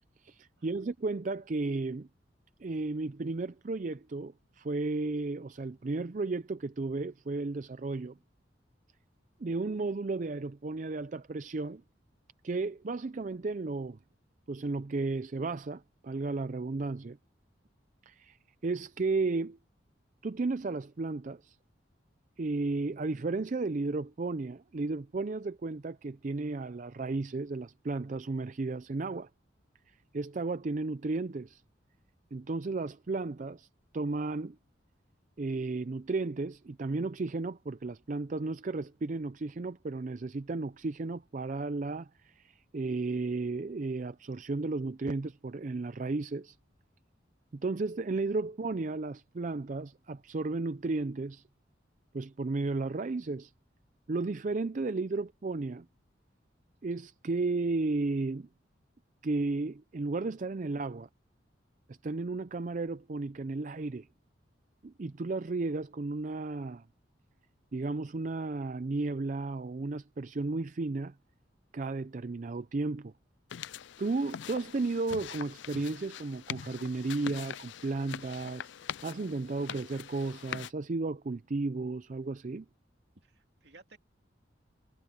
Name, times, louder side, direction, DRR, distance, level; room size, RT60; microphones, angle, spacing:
voice 1, 0.2-2.1 2.6-8.2 9.4-11.8 12.4-14.0 14.5-17.2 18.0-18.4 18.6-19.6 20.2-21.6 22.4-29.3 29.9-31.6 32.3-33.7 33.9-34.6 35.4-46.6 47.5-51.4 52.1-53.5 54.1-55.9 56.8-58.5 59.2-61.1 61.9-64.1 64.8-66.8 67.7-71.1 71.7-73.1 74.0-78.7 79.0-82.7, right 3 dB, 45° right, 0.5 m, -34 dB
sound 1, 73.5-80.7, left 9 dB, 75° left, 0.4 m, -43 dB
voice 2, 83.1-84.0, right 3 dB, 60° right, 2.7 m, -57 dB
head